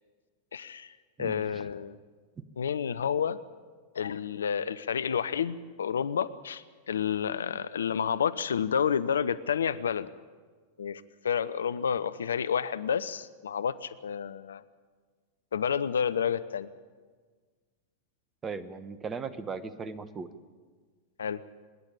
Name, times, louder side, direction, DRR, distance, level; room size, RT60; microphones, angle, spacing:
voice 1, 0.5-0.9 1.2-2.0 2.6-3.4 3.9-10.1 10.8-14.6 15.5-16.7 21.2-21.4, left 7 dB, 70° left, 15 dB, 0.6 m, -30 dB
voice 2, 18.4-20.3, right 5 dB, 20° right, 14 dB, 1.1 m, -37 dB
25.0 x 11.0 x 9.9 m, 1.5 s
figure-of-eight pair, 90°, 0 cm